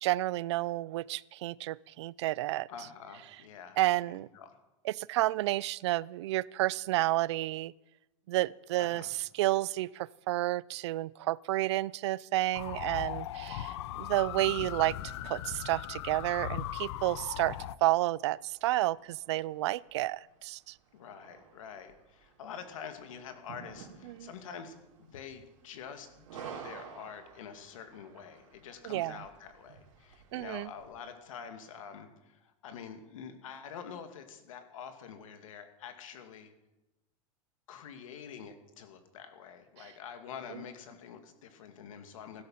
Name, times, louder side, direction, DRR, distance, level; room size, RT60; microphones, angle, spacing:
voice 1, 0.0-2.7 3.8-4.3 4.8-7.7 8.3-9.1 9.3-15.0 15.2-20.7 24.1-24.3 28.8-29.2 30.3-30.7 40.5-40.6, right 17 dB, 60° right, 23 dB, 0.4 m, -31 dB
voice 2, 2.7-3.8 4.1-4.6 8.8-9.1 20.9-24.7 25.0-36.5 37.7-42.4, left 7 dB, 85° left, 7 dB, 2.5 m, -46 dB
sound 1, 12.5-17.8, left 12 dB, 60° left, 0.6 m, -38 dB
sound 2, 16.4-30.9, right 8 dB, 80° right, 3.8 m, -53 dB
16.5 x 12.5 x 5.7 m, 0.98 s
supercardioid pair, 175°, 17 cm